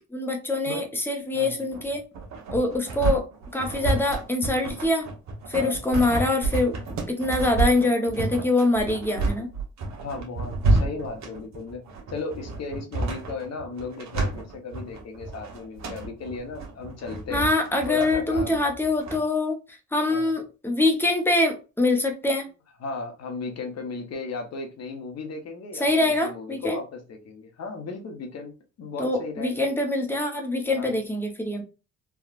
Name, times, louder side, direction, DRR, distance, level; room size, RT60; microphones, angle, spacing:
voice 1, 0.1-2.0 2.5-3.3 3.5-5.1 5.5-6.7 7.1-9.5 17.3-19.6 19.9-22.5 25.8-26.8 29.0-31.6, left 2 dB, 5° left, 0.8 m, -24 dB
sound 1, 1.7-19.2, right 3 dB, 65° right, 0.9 m, -29 dB
voice 2, 10.0-11.8 12.1-17.4 17.9-18.7 20.1-20.3 22.8-29.6 30.7-30.9, left 3 dB, 60° left, 1.0 m, -35 dB
3.5 x 2.3 x 2.4 m
cardioid pair, 90°, 30 cm